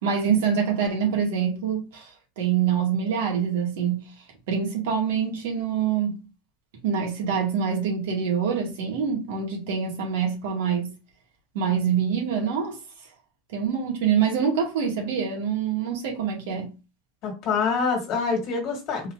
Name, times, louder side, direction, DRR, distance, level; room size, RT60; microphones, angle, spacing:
voice 1, 0.0-2.1 2.4-4.0 4.5-6.2 6.8-10.9 11.5-12.8 13.5-16.7, right 7 dB, 70° right, 2.0 m, -25 dB
voice 2, 17.2-19.1, left 5 dB, 30° left, 1.7 m, -26 dB
4.3 x 2.9 x 3.9 m
supercardioid pair, 170°, 0 cm